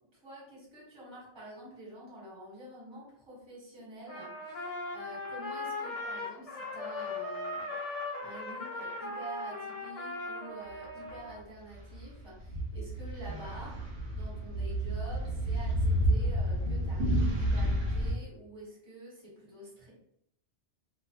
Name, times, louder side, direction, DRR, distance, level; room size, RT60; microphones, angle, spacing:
voice 1, 0.1-7.7 8.2-19.9, right 1 dB, 25° right, -6 dB, 1.0 m, -48 dB
Trumpet, 4.1-11.4, left 2 dB, 45° left, 0.5 m, -38 dB
sound 1, 11.7-18.1, equal, 55° right, 0.8 m, -30 dB
2.2 x 2.0 x 2.8 m, 0.71 s
omnidirectional pair, 1.2 m